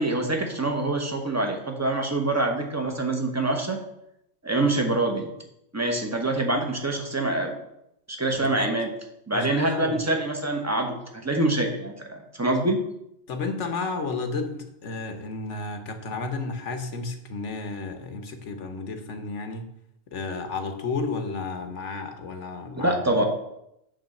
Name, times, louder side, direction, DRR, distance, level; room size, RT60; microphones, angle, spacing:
voice 1, 0.0-3.8 4.4-5.3 5.7-7.6 8.2-8.9 9.3-12.8 22.8-23.2, right 2 dB, 15° right, 3 dB, 1.0 m, -25 dB
voice 2, 8.4-8.8 9.3-10.0 13.3-19.7 20.1-23.2, left 3 dB, 70° left, 6 dB, 1.3 m, -32 dB
8.8 x 3.6 x 6.5 m, 0.81 s
omnidirectional pair, 1.3 m